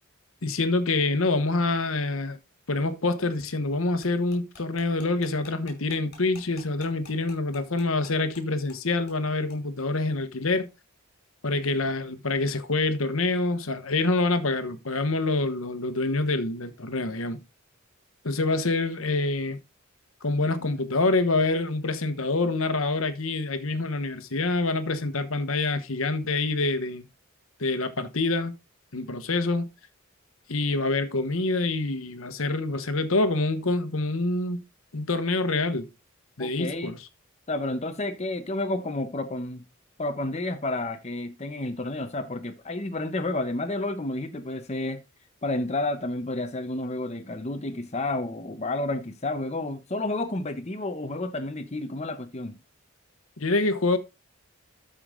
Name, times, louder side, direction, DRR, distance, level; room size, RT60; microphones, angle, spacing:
voice 1, 0.4-2.4 2.7-10.7 11.4-17.4 18.2-19.6 20.2-27.1 27.6-28.5 28.9-29.7 30.5-34.6 34.9-35.9 36.4-37.0 53.4-54.0, left 2 dB, 75° left, 1.2 m, -26 dB
sound 1, 4.0-8.4 8.7-8.8 9.1-9.2 9.5-9.6, left 4 dB, 50° left, 4.9 m, -49 dB
voice 2, 36.4-36.9 37.5-39.6 40.0-45.0 45.4-52.5, left 2 dB, 30° left, 0.8 m, -30 dB
13.0 x 4.9 x 3.7 m
head